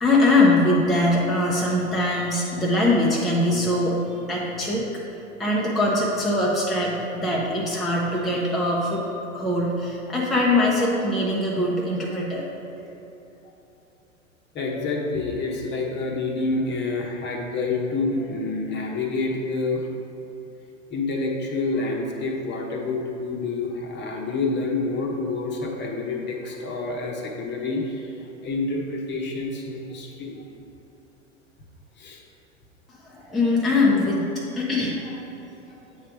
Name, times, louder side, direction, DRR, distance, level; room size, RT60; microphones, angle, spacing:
voice 1, 0.0-4.9 5.4-9.1 9.3-12.5 33.0-35.4, left 2 dB, ahead, -5 dB, 0.6 m, -22 dB
voice 2, 14.5-19.9 20.9-30.4 32.0-32.2, left 3 dB, 30° left, 1 dB, 0.9 m, -28 dB
8.0 x 3.3 x 5.0 m, 2.9 s
figure-of-eight pair, 95°, 39 cm